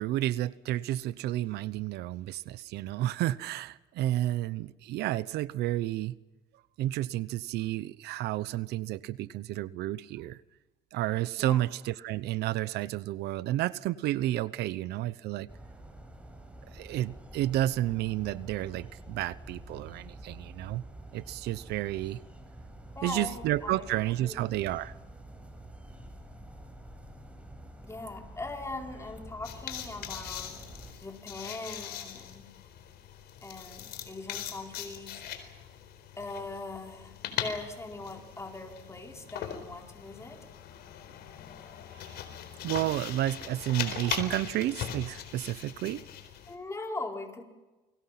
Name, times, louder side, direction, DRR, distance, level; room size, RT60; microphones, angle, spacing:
voice 1, 0.0-6.2 6.8-10.4 10.9-15.5 16.7-20.8 21.1-22.2 23.0-24.9 41.9-42.2 42.6-46.0, right 14 dB, 80° right, 18 dB, 0.8 m, -31 dB
sound 1, 15.5-30.9, right 1 dB, 5° right, 5.4 m, -48 dB
voice 2, 22.9-24.4 27.8-30.6 31.0-32.5 33.4-35.4 36.2-40.4 46.5-47.4, left 2 dB, 15° left, 3 dB, 4.6 m, -41 dB
sound 2, 29.4-46.6, left 9 dB, 70° left, 4.3 m, -40 dB
29.0 x 22.5 x 5.9 m, 1.1 s
cardioid pair, 110°, 17 cm